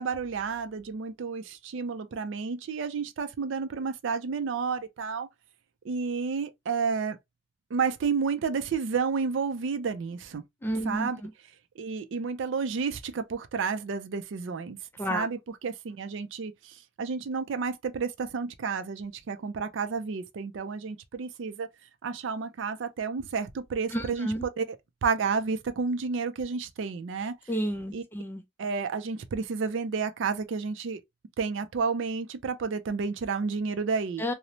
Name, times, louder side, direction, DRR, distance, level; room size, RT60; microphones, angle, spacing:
voice 1, 0.0-5.3 5.8-7.2 7.7-10.4 10.8-11.2 11.8-14.8 15.1-21.7 22.0-24.8 25.0-27.4 27.9-28.0 28.6-31.0 31.4-34.2, right 5 dB, 65° right, 0.4 m, -31 dB
voice 2, 10.6-11.3 15.0-15.3 23.9-24.4 27.5-28.4 34.2-34.3, equal, 10° left, 0.4 m, -31 dB
3.0 x 2.0 x 2.6 m
head